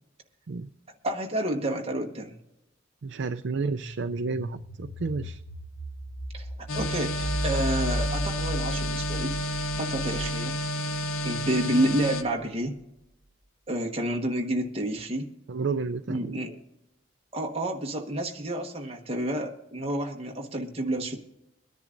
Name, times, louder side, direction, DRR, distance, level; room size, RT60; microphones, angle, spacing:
voice 1, 1.0-2.4 6.3-9.4 9.8-10.6 11.2-12.8 13.7-15.3 16.1-16.6 17.3-21.2, right 1 dB, 30° right, 1 dB, 1.2 m, -29 dB
voice 2, 3.0-5.4 15.5-16.4, right 4 dB, 55° right, 9 dB, 0.4 m, -31 dB
sound 1, 3.8-12.5, equal, 35° left, 3.1 m, -35 dB
sound 2, 6.7-12.2, equal, 75° left, 1.1 m, -31 dB
23.5 x 10.5 x 2.6 m, 0.90 s
head